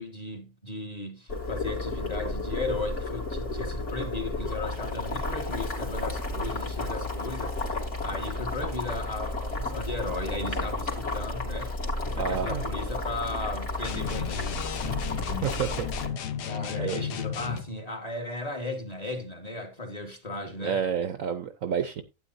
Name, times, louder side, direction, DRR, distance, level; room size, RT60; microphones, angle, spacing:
voice 1, 0.0-11.7 12.0-15.4 16.4-20.8, left 2 dB, 25° left, 1.5 m, -36 dB
Boiling, 1.3-16.1, left 2 dB, 45° left, 2.8 m, -32 dB
voice 2, 12.2-12.6 15.4-15.9 16.8-17.0 20.6-22.0, right 7 dB, 65° right, 0.9 m, -29 dB
sound 1, 13.8-17.7, left 8 dB, 75° left, 1.5 m, -34 dB
12.0 x 9.0 x 2.6 m
omnidirectional pair, 1.8 m